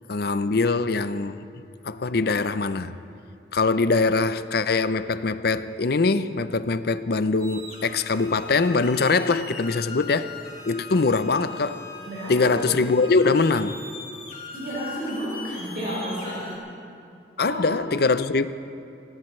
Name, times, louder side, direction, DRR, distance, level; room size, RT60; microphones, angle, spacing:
voice 1, 0.1-1.4 1.8-2.9 3.5-10.3 10.7-11.8 12.3-13.8 17.4-18.5, left 3 dB, 55° left, 0.5 m, -23 dB
sound 1, 7.4-16.6, left 4 dB, 40° left, 3.8 m, -41 dB
voice 2, 12.0-12.9 14.5-16.5 17.4-17.8, right 1 dB, 55° right, 5.0 m, -32 dB
25.5 x 17.5 x 3.2 m
head